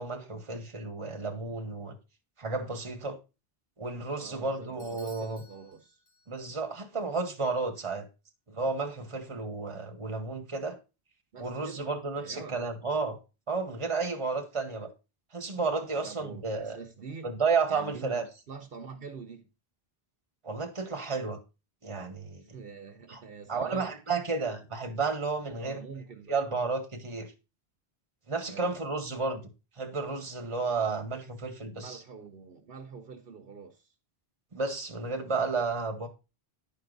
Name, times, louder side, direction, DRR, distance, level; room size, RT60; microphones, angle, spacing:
voice 1, 0.0-1.9 2.4-3.2 3.8-5.4 6.3-8.1 8.5-10.8 11.4-13.2 13.5-14.9 15.3-16.8 17.2-18.3 20.4-21.4 21.8-22.4 23.1-23.2 23.5-25.8 26.3-27.3 28.3-29.4 29.8-32.0 34.5-36.1, right 4 dB, 30° right, 1.2 m, -32 dB
voice 2, 4.1-6.0 11.3-12.6 16.0-17.3 17.7-19.5 22.4-23.9 25.5-26.4 28.5-28.8 31.7-33.9, right 5 dB, 65° right, 1.1 m, -45 dB
Bell / Doorbell, 4.8-6.6, left 2 dB, 80° left, 2.2 m, -56 dB
10.5 x 4.8 x 3.9 m
omnidirectional pair, 1.0 m